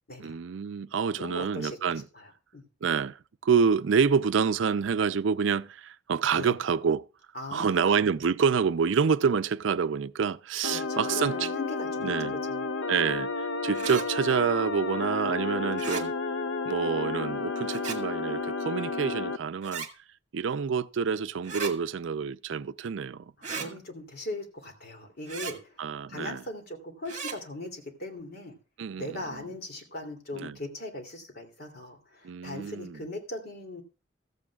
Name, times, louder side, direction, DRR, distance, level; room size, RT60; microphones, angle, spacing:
voice 1, 0.2-2.0 2.8-7.1 7.5-11.5 12.0-12.4 12.9-16.1 16.6-19.9 20.3-23.7 25.8-26.4 28.8-29.5 30.3-30.6 32.2-33.0, right 6 dB, 75° right, 0.4 m, -27 dB
voice 2, 1.2-1.8 2.1-2.3 2.5-2.6 6.3-6.5 7.3-8.0 10.7-12.7 23.6-25.7 26.1-28.5 29.0-33.8, left 2 dB, 55° left, 2.9 m, -39 dB
sound 1, 10.6-19.4, left 3 dB, 90° left, 0.7 m, -32 dB
sound 2, 13.7-14.1 15.7-16.1 17.7-18.0 19.6-19.9 21.4-21.7 23.4-23.7 25.3-25.6 27.1-27.4, right 5 dB, 40° right, 1.8 m, -36 dB
15.0 x 14.0 x 2.4 m
head